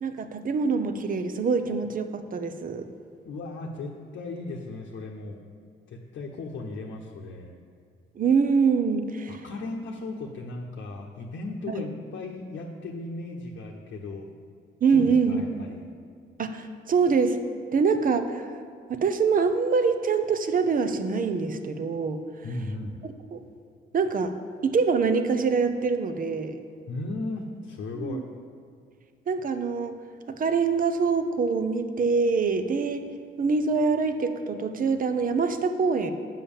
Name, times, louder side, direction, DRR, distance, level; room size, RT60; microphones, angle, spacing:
voice 1, 0.0-2.9 8.2-9.4 11.7-11.8 14.8-15.6 16.4-17.4 17.7-18.5 18.9-22.2 23.0-23.5 23.9-24.3 24.6-26.6 27.9-28.2 29.3-30.0 30.3-33.0 33.4-36.1, right 5 dB, 45° right, 9 dB, 0.7 m, -25 dB
voice 2, 3.2-5.4 5.9-7.5 9.3-14.3 14.9-15.8 22.4-23.0 26.9-28.2, left 2 dB, 70° left, 0 dB, 0.9 m, -36 dB
7.0 x 5.8 x 7.1 m, 2.2 s
cardioid pair, 90°, 20 cm